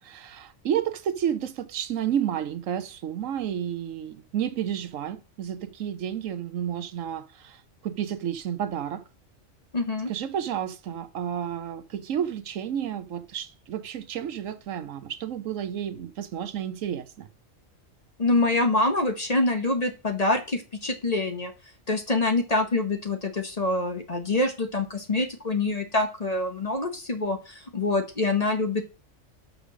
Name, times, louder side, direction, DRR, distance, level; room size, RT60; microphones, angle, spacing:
voice 1, 0.0-9.0 10.1-17.3, right 9 dB, 75° right, 1.1 m, -31 dB
voice 2, 9.7-10.1 18.2-21.5 21.9-28.8, left 2 dB, 35° left, 1.0 m, -25 dB
6.6 x 5.0 x 6.2 m
omnidirectional pair, 1.4 m